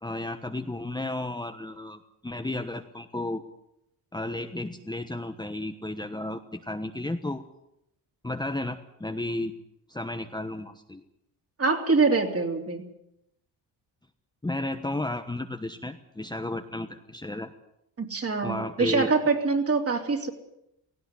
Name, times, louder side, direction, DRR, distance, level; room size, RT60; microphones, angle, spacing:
voice 1, 0.0-3.4 4.1-7.4 8.2-9.5 9.9-11.0 14.4-17.5 18.4-19.1, left 2 dB, 10° left, 5 dB, 1.2 m, -33 dB
voice 2, 11.6-12.9 18.0-20.3, right 4 dB, 30° right, 4 dB, 3.3 m, -24 dB
18.0 x 16.5 x 9.7 m, 0.80 s
cardioid pair, 105°, 43 cm